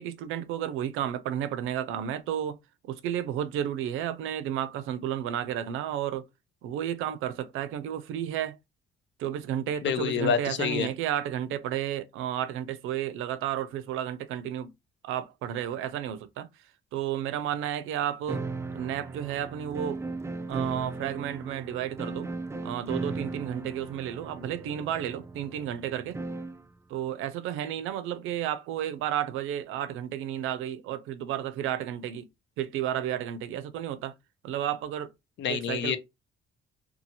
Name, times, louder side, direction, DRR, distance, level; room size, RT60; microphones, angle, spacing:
voice 1, 0.0-2.6 2.9-6.3 6.6-8.6 9.2-14.7 15.0-16.5 16.9-18.4 18.7-20.0 20.5-22.3 22.6-26.2 26.9-32.3 32.6-34.1 34.4-35.1 35.5-36.0, right 10 dB, 90° right, 0.4 m, -32 dB
voice 2, 9.8-10.9 35.4-36.0, left 8 dB, 65° left, 0.6 m, -27 dB
sound 1, 18.3-26.7, right 3 dB, 15° right, 0.3 m, -37 dB
2.7 x 2.4 x 2.8 m
cardioid pair, 90°, 20 cm